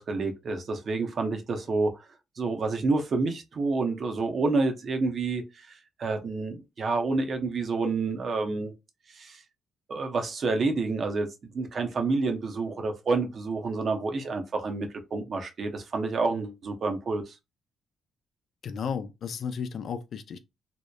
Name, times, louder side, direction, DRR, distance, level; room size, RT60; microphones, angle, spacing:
voice 1, 0.0-1.9 2.4-8.7 9.1-9.4 9.9-11.3 11.5-17.3, right 3 dB, 50° right, 0.6 m, -29 dB
voice 2, 18.6-20.4, left 6 dB, 60° left, 0.4 m, -33 dB
2.8 x 2.1 x 2.2 m
cardioid pair, 90°, 0 cm